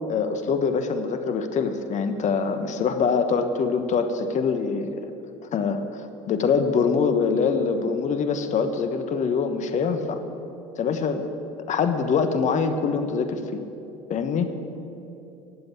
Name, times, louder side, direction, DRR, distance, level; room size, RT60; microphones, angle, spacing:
voice 1, 0.1-5.1 5.5-10.2 10.8-11.3 11.7-13.6 14.1-14.5, left 5 dB, 45° left, 9 dB, 1.3 m, -24 dB
17.0 x 7.9 x 9.5 m, 2.9 s
hypercardioid pair, 75°, 18 cm